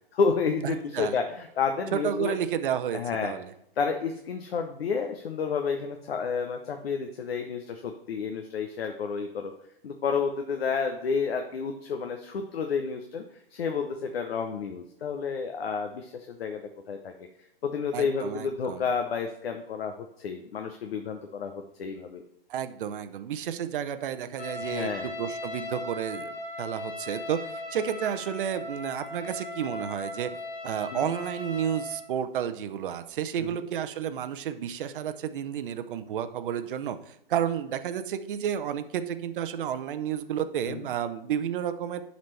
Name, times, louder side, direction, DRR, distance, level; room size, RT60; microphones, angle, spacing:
voice 1, 0.1-2.4 2.9-3.3 3.8-9.5 9.8-13.2 13.5-16.6 16.9-17.1 17.6-21.5 21.8-22.2 24.6-25.1 30.9-31.1 33.4-33.6 40.7-40.8, left 5 dB, 80° left, 5 dB, 0.8 m, -30 dB
voice 2, 0.6-1.2 1.9-3.5 17.9-18.8 22.5-30.3 30.6-42.0, right 9 dB, 60° right, 10 dB, 0.6 m, -31 dB
Trumpet, 24.4-32.0, left 2 dB, 30° left, 1.8 m, -38 dB
11.0 x 4.1 x 3.2 m, 0.76 s
hypercardioid pair, 145°, 30 cm